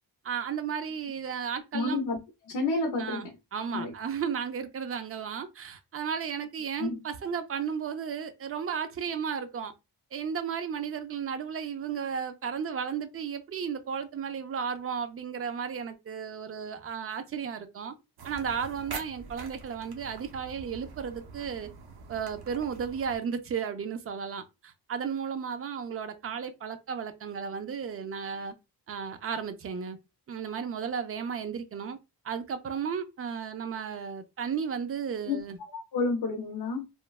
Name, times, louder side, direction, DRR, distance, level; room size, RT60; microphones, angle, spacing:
voice 1, 0.2-2.0 3.0-9.7 10.1-17.9 18.2-21.7 22.1-28.5 28.9-30.0 30.3-32.0 32.2-35.6, right 7 dB, 35° right, 0.4 m, -34 dB
voice 2, 1.7-2.2 2.5-3.3 3.7-3.9 6.8-7.0 35.3-35.4 35.7-36.8, left 3 dB, 70° left, 0.6 m, -30 dB
sound 1, 18.2-23.2, right 4 dB, 65° right, 0.7 m, -45 dB
3.1 x 2.2 x 2.2 m
wide cardioid pair, 125°, 41 cm